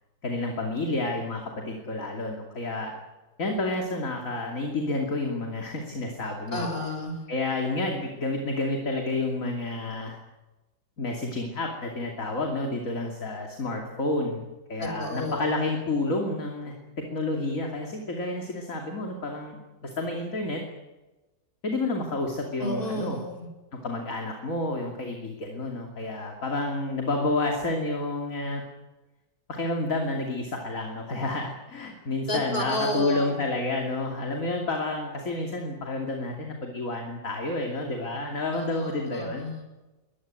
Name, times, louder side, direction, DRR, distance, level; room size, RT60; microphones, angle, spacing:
voice 1, 0.2-3.0 3.4-6.6 7.3-10.2 11.0-14.4 14.7-16.7 17.1-20.6 21.6-23.2 23.7-28.6 29.5-39.5, left 2 dB, 45° left, 2 dB, 3.1 m, -30 dB
voice 2, 6.5-7.2 14.8-15.6 22.6-23.5 32.3-33.4 38.5-39.6, left 1 dB, 30° left, 4 dB, 6.4 m, -31 dB
22.5 x 20.0 x 9.1 m, 1.1 s
omnidirectional pair, 1.9 m